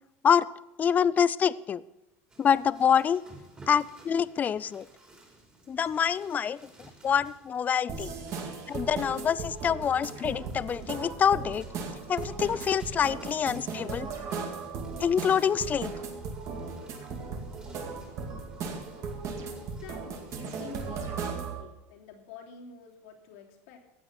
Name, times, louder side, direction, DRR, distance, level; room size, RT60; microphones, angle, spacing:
voice 1, 0.8-1.8 2.4-3.2 3.7-4.9 5.7-6.6 7.0-8.1 8.7-11.7 12.1-14.1 15.0-15.9, left 7 dB, 20° left, 19 dB, 0.4 m, -26 dB
sound 1, 2.3-21.3, right 2 dB, 15° right, 3.4 m, -55 dB
sound 2, 7.9-21.6, right 4 dB, 45° right, 2.3 m, -37 dB
voice 2, 19.8-23.8, left 6 dB, 80° left, 0 dB, 3.2 m, -48 dB
15.0 x 9.3 x 5.9 m, 0.90 s
supercardioid pair, 135°, 7 cm